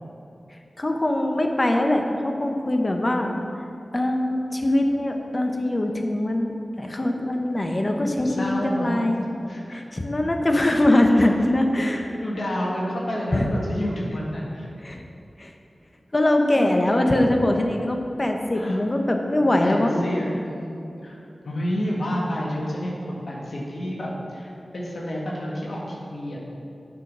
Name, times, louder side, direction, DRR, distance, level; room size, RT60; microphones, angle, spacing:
voice 1, 0.8-3.3 3.9-6.5 6.8-9.2 9.7-12.0 13.3-13.5 14.8-15.0 15.4-15.5 16.1-20.0, left 1 dB, 40° left, 3 dB, 1.1 m, -22 dB
voice 2, 8.0-9.0 9.5-9.9 11.1-11.3 11.8-14.7 16.5-16.9 18.5-18.8 19.4-21.2 21.4-26.4, equal, 75° left, -4 dB, 1.8 m, -30 dB
8.7 x 6.1 x 6.2 m, 2.7 s
cardioid pair, 45°, 0 cm